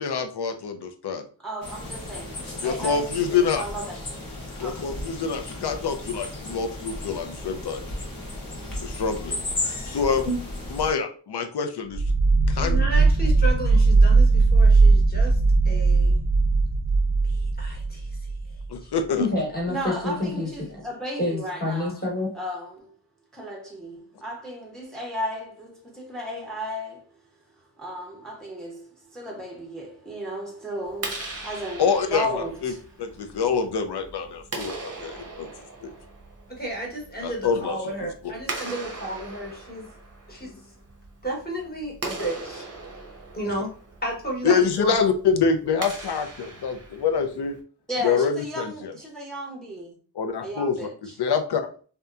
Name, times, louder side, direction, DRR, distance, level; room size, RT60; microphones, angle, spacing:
voice 1, 0.0-1.2 2.6-3.6 4.6-7.8 8.8-9.4 9.8-10.3 10.7-12.0 12.5-13.0 18.7-19.3 31.8-32.7 33.0-35.5 35.8-35.9 37.2-37.8 44.4-47.6 48.0-48.9 50.2-50.8 51.0-51.6, left 6 dB, 70° left, 0.5 m, -26 dB
voice 2, 1.4-4.3 4.6-4.9 19.7-22.0 22.3-22.9 23.3-27.1 27.8-32.8 33.1-33.2 35.2-35.3 35.7-36.1 47.9-50.0 50.4-51.2, equal, ahead, 0.6 m, -34 dB
sound 1, 1.6-10.9, left 2 dB, 50° left, 0.9 m, -34 dB
sound 2, 11.9-18.7, right 3 dB, 80° right, 0.6 m, -19 dB
voice 3, 12.5-15.4 15.6-16.2 17.3-18.1 18.8-18.9 19.2-20.8 21.2-22.3 36.5-39.9 40.3-40.6 41.2-42.7 43.3-43.7 44.0-45.0, equal, 20° left, 1.0 m, -31 dB
Clapping, 30.8-47.6, right 3 dB, 35° right, 0.7 m, -39 dB
2.7 x 2.2 x 2.3 m
wide cardioid pair, 65°, 42 cm